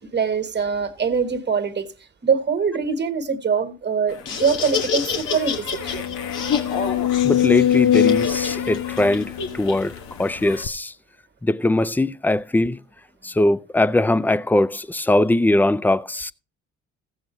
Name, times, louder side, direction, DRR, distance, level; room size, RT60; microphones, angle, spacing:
voice 1, 0.1-1.9 2.2-6.1, right 6 dB, 35° right, 1.5 m, -23 dB
Laughter, 4.1-10.6, left 6 dB, 85° left, 2.0 m, -29 dB
sound 1, 4.6-4.7 5.1-5.2 5.8-10.0 10.6-10.7, left 11 dB, 65° left, 0.6 m, -22 dB
voice 2, 7.2-10.9 11.4-12.8 13.2-16.3, left 1 dB, 5° left, 0.4 m, -21 dB
15.0 x 7.8 x 3.1 m
cardioid pair, 90°, 30 cm